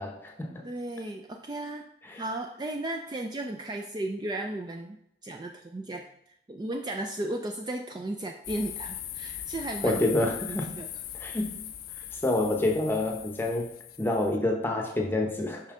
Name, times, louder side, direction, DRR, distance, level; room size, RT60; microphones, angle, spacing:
voice 1, 0.0-0.6 2.1-2.2 9.8-10.7 11.1-11.5 12.1-13.7 14.0-15.7, left 2 dB, 10° left, 2 dB, 0.9 m, -28 dB
voice 2, 0.6-1.9 2.1-5.0 5.2-6.1 6.5-10.0 10.5-10.9, right 1 dB, 20° right, 3 dB, 0.3 m, -35 dB
sound 1, 8.4-14.4, left 11 dB, 50° left, 0.4 m, -40 dB
5.6 x 5.5 x 3.7 m, 0.77 s
head